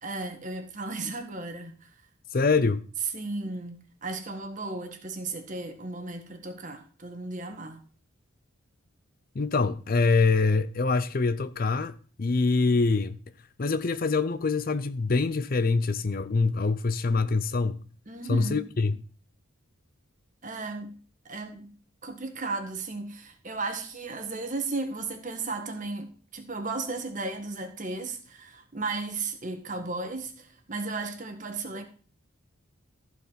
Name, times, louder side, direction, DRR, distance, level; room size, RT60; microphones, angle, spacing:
voice 1, 0.0-1.9 3.1-7.8 18.1-18.7 20.4-21.0 21.2-21.7 22.0-31.8, right 3 dB, 35° right, 1.6 m, -35 dB
voice 2, 2.3-2.9 9.3-13.2 13.6-17.8 18.3-19.0, left 4 dB, 40° left, 0.5 m, -25 dB
14.5 x 4.9 x 5.8 m
head